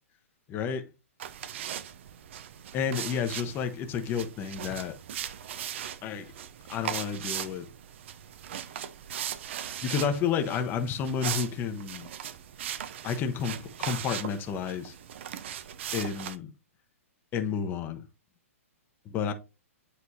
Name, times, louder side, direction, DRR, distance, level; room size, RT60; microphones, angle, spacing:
voice 1, 0.5-0.8 2.7-4.9 6.0-6.3 6.7-7.7 9.8-12.1 13.0-14.9 15.9-16.5 17.3-18.0 19.1-19.3, left 7 dB, 25° left, 0.8 m, -31 dB
sound 1, 1.2-16.4, right 10 dB, 55° right, 0.6 m, -39 dB
8.3 x 4.2 x 2.7 m
hypercardioid pair, 125°, 8 cm